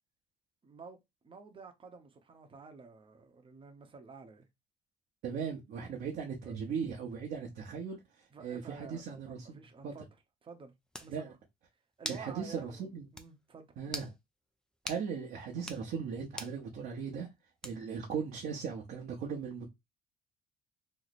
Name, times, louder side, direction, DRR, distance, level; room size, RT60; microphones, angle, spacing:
voice 1, 0.6-4.5 6.4-6.5 8.3-10.1 10.4-11.4 12.0-13.7, right 5 dB, 30° right, 0.8 m, -51 dB
voice 2, 5.2-8.0 8.4-9.6 9.8-9.9 11.1-11.3 12.1-13.0 13.8-14.1 14.8-17.3 17.6-19.7, right 6 dB, 65° right, 0.9 m, -38 dB
sound 1, 10.5-10.6 10.9-11.1 12.0-12.3 12.7-12.8 13.2-13.3 13.9-14.1 14.9-15.0 15.6-15.8 16.4-16.6 17.6-18.0, equal, 5° left, 0.5 m, -41 dB
3.1 x 2.1 x 4.0 m
cardioid pair, 110°, 17 cm